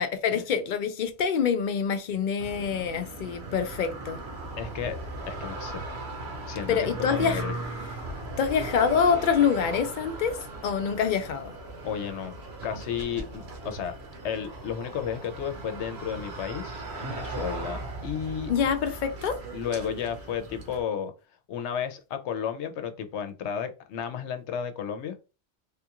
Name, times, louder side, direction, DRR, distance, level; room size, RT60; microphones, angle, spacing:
voice 1, 0.0-4.2 6.7-7.4 8.4-10.4 10.6-11.5 18.5-19.4, left 7 dB, 60° left, 0.5 m, -26 dB
sound 1, 2.4-20.8, right 2 dB, 70° right, 1.1 m, -38 dB
voice 2, 4.6-5.0 5.3-5.9 6.5-7.5 11.8-12.3 12.6-13.9 14.2-18.5 19.5-21.1 21.5-25.2, left 8 dB, 85° left, 0.9 m, -33 dB
3.4 x 2.4 x 2.9 m
omnidirectional pair, 1.1 m